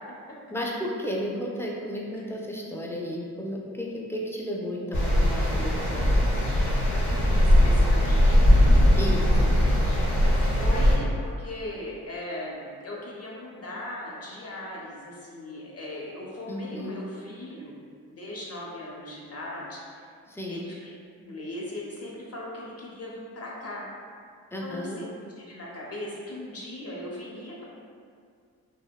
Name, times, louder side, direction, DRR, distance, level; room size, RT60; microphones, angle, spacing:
voice 1, 0.5-6.1 9.0-9.6 16.5-17.0 20.3-20.6 24.5-25.0, equal, 5° left, -2 dB, 0.3 m, -33 dB
sound 1, 4.9-11.0, left 1 dB, 85° left, 0.7 m, -20 dB
voice 2, 7.4-8.6 10.2-17.7 18.1-19.8 20.5-20.8 21.2-23.9 24.6-25.1 25.4-27.6, left 1 dB, 40° left, -4 dB, 0.8 m, -38 dB
2.7 x 2.0 x 2.2 m, 2.2 s
supercardioid pair, 50°, 37 cm